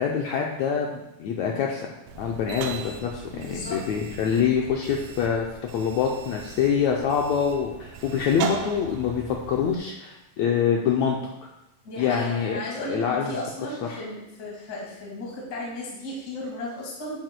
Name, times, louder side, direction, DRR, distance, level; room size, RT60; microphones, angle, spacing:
voice 1, 0.0-5.5 5.7-11.5 12.0-13.4 13.9-14.0, left 7 dB, 85° left, 0 dB, 1.6 m, -25 dB
sound 1, 2.1-9.8, right 5 dB, 80° right, 2.1 m, -38 dB
voice 2, 3.3-3.8 11.8-17.2, left 1 dB, 30° left, -4 dB, 1.8 m, -35 dB
9.3 x 8.0 x 2.2 m, 0.90 s
omnidirectional pair, 3.9 m